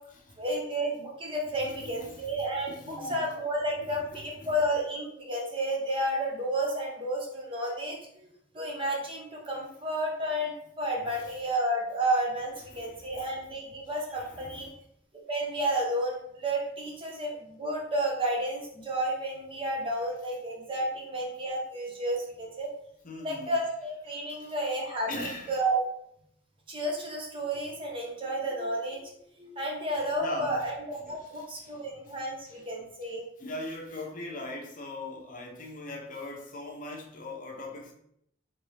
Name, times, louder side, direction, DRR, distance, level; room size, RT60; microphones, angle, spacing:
voice 1, 0.4-8.3 8.5-14.7 15.3-22.7 23.2-25.8 26.7-29.0 29.4-33.2, right 1 dB, 30° right, -2 dB, 0.9 m, -31 dB
voice 2, 1.6-3.2 3.7-4.5 11.0-11.4 12.7-13.4 14.2-14.7 23.0-23.5 24.3-24.5 25.1-25.6 30.0-30.6 31.0-32.2 32.5-32.6 33.0-33.1 33.4-37.9, left 2 dB, 45° left, 0 dB, 0.8 m, -41 dB
4.2 x 3.0 x 3.4 m, 0.74 s
head